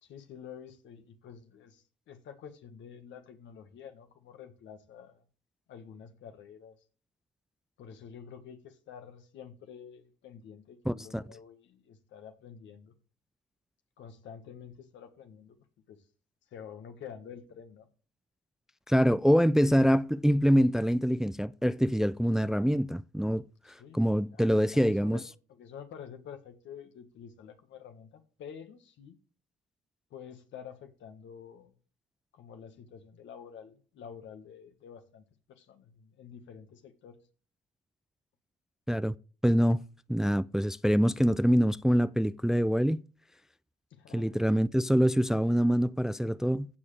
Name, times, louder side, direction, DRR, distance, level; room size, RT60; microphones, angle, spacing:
voice 1, 0.0-5.2 5.7-6.8 7.8-12.9 14.0-15.6 15.9-16.0 16.5-17.9 23.8-24.0 24.3-25.2 25.5-29.2 30.1-31.7 32.3-37.2 43.9-44.3, left 7 dB, 75° left, 1.6 m, -48 dB
voice 2, 10.9-11.2 18.9-25.2 38.9-39.1 39.4-39.8 40.1-43.0 44.1-46.7, equal, ahead, 0.4 m, -25 dB
15.0 x 6.9 x 3.4 m
supercardioid pair, 55°, 19 cm